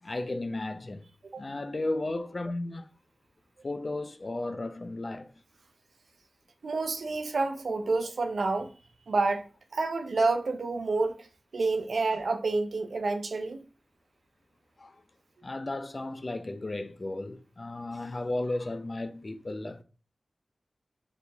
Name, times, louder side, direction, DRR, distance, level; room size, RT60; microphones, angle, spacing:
voice 1, 0.0-1.1 1.4-2.9 3.6-5.3 14.8-15.0 15.4-19.8, left 2 dB, 45° left, 0.4 m, -34 dB
voice 2, 6.6-8.7 9.1-9.4 9.7-11.3 11.5-13.6, right 3 dB, 80° right, 0.5 m, -28 dB
4.0 x 2.9 x 3.3 m
wide cardioid pair, 70°, 0 cm